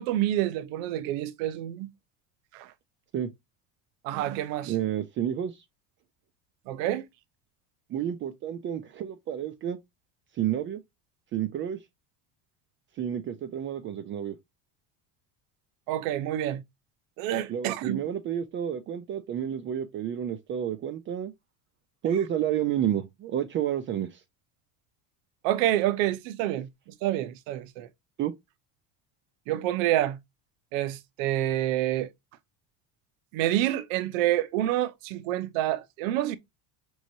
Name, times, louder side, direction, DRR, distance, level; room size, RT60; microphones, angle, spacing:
voice 1, 0.0-1.9 2.5-2.7 4.0-4.7 6.7-7.0 15.9-16.6 17.2-18.0 25.4-26.7 27.0-27.9 29.5-30.2 30.7-32.1 33.3-36.4, right 13 dB, 85° right, 0.8 m, -27 dB
voice 2, 4.7-5.6 7.9-9.8 10.4-10.8 11.3-11.8 13.0-14.4 17.5-21.3 22.0-24.2 28.2-28.3, right 10 dB, 30° right, 0.5 m, -30 dB
6.1 x 3.1 x 2.7 m
cardioid pair, 155°, 39 cm